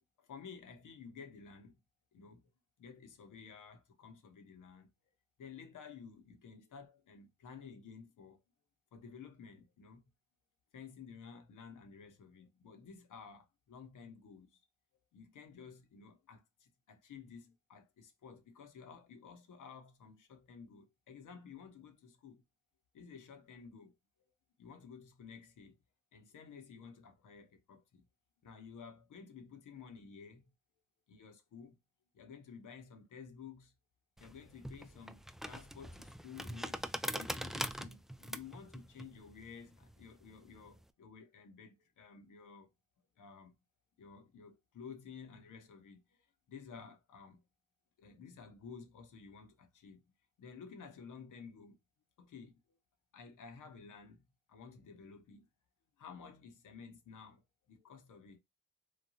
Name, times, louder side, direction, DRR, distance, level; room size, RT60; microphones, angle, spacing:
voice 1, 0.0-1.8 2.1-2.5 2.8-4.9 5.4-8.4 8.9-10.0 10.7-14.6 15.1-22.4 22.9-23.9 24.6-25.8 26.1-28.0 28.4-30.5 31.1-31.8 32.1-33.7 34.2-42.7 43.2-43.5 44.0-47.4 48.0-50.1 50.4-51.8 52.2-52.5 53.1-55.5 56.0-57.4 57.7-58.4, left 6 dB, 65° left, 0.8 m, -53 dB
sound 1, 34.2-40.8, equal, ahead, 0.3 m, -43 dB
3.2 x 2.2 x 2.5 m
hypercardioid pair, 40°, 34 cm